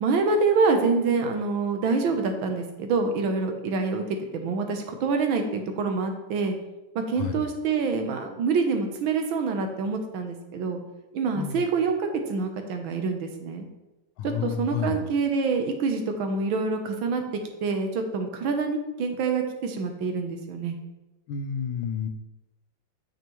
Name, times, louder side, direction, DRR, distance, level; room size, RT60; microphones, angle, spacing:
voice 1, 0.0-4.0 4.3-6.5 6.9-10.8 11.1-13.7 14.2-17.2 17.6-20.7, right 4 dB, 80° right, 5 dB, 1.7 m, -26 dB
voice 2, 7.2-7.5 11.3-11.7 14.2-15.0 21.3-22.1, left 7 dB, 80° left, 7 dB, 1.5 m, -30 dB
8.9 x 6.0 x 3.0 m, 1.0 s
omnidirectional pair, 2.2 m